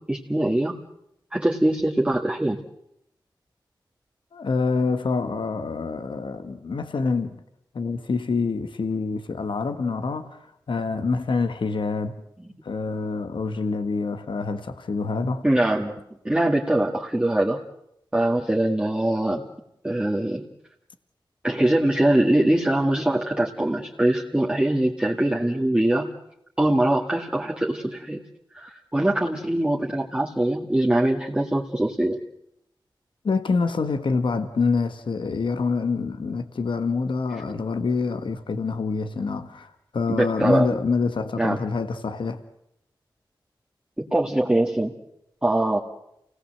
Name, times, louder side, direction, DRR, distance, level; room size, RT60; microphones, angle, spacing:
voice 1, 0.1-0.8 1.3-2.6 15.4-17.6 18.1-19.4 19.8-20.5 21.4-26.1 26.6-28.2 28.5-32.2 40.1-40.7 41.4-41.6 44.0-44.9 45.4-45.8, right 1 dB, 15° right, 2.0 m, -22 dB
voice 2, 4.3-7.4 7.7-12.1 12.6-15.4 33.2-42.4, left 4 dB, 85° left, 1.5 m, -26 dB
29.0 x 18.5 x 7.8 m
wide cardioid pair, 75°, 8 cm